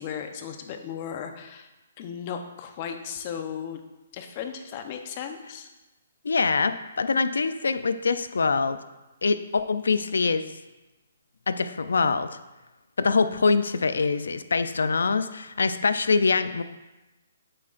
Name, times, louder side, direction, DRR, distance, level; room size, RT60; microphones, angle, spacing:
voice 1, 0.0-1.7 2.0-3.8 4.1-5.7, left 8 dB, 35° left, 6 dB, 0.8 m, -36 dB
voice 2, 6.2-8.8 9.2-10.4 11.5-12.3 13.0-16.6, left 4 dB, 85° left, 11 dB, 0.5 m, -24 dB
8.7 x 7.6 x 2.5 m, 1.1 s
hypercardioid pair, 150°, 0 cm